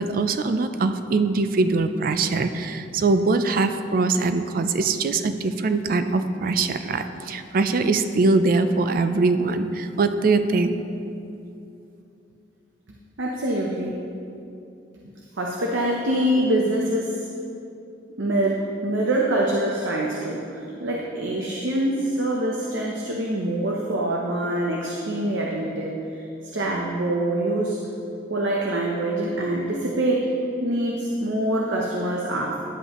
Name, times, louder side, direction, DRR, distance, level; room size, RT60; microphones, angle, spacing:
voice 1, 0.0-10.8, right 3 dB, 50° right, 9 dB, 0.4 m, -22 dB
voice 2, 13.2-14.0 15.4-17.2 18.2-26.2 26.5-27.8 28.3-30.3 30.6-32.6, right 1 dB, 85° right, -2 dB, 0.8 m, -25 dB
11.0 x 7.8 x 3.0 m, 2.7 s
head